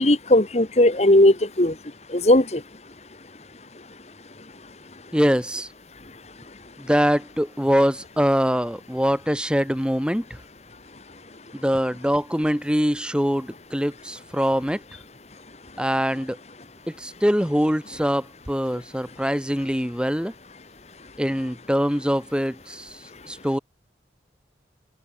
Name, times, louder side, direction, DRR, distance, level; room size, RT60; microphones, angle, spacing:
voice 1, 0.0-1.7 2.1-2.6, left 1 dB, 40° left, 1.6 m, -17 dB
voice 2, 5.1-5.7 6.8-10.4 11.5-14.8 15.8-16.4 16.9-20.3 21.2-23.6, equal, 5° right, 6.3 m, -23 dB
head